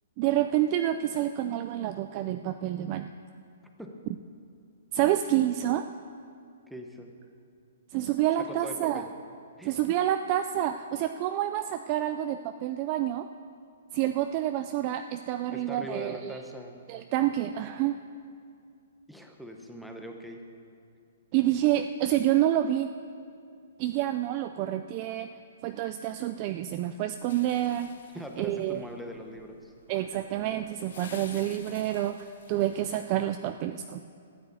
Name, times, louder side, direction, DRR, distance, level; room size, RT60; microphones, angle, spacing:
voice 1, 0.2-3.1 4.9-5.9 7.9-9.1 9.6-13.3 13.9-16.4 16.9-18.0 21.3-22.9 23.8-25.3 25.6-27.9 28.4-28.8 29.9-34.0, right 12 dB, 25° right, 9 dB, 0.3 m, -28 dB
voice 2, 6.7-7.1 8.4-9.1 9.6-9.8 15.5-16.8 19.1-20.4 28.1-29.7, equal, ahead, 2 dB, 0.9 m, -41 dB
sound 1, 27.3-33.3, left 6 dB, 55° left, 1.2 m, -52 dB
13.0 x 9.5 x 8.3 m, 2.4 s
hypercardioid pair, 175°, 0 cm